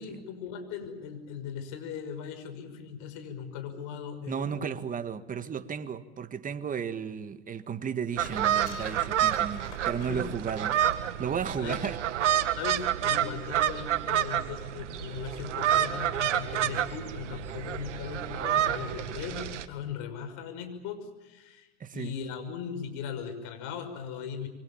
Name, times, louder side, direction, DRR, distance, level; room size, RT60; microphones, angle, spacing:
voice 1, 0.0-4.7 10.1-10.3 11.6-11.8 12.6-24.5, left 7 dB, 55° left, 6.1 m, -39 dB
voice 2, 4.3-10.8 11.2-12.0 21.8-22.1, right 7 dB, 25° right, 1.7 m, -34 dB
sound 1, 8.2-11.0 11.6-11.9, left 9 dB, 75° left, 6.9 m, -49 dB
sound 2, 8.2-19.7, right 10 dB, 90° right, 1.8 m, -29 dB
27.5 x 24.0 x 7.3 m
hypercardioid pair, 105°, 35 cm